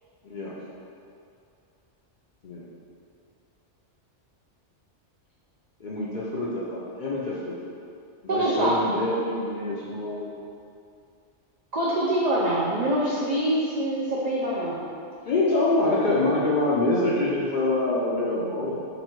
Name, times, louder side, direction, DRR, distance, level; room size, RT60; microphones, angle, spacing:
voice 1, 5.8-7.5 8.2-10.4 15.3-18.9, left 2 dB, 60° left, -7 dB, 0.5 m, -25 dB
voice 2, 8.3-8.7 11.7-14.8, right 1 dB, 70° right, -6 dB, 0.4 m, -24 dB
3.0 x 2.6 x 4.4 m, 2.5 s
omnidirectional pair, 1.2 m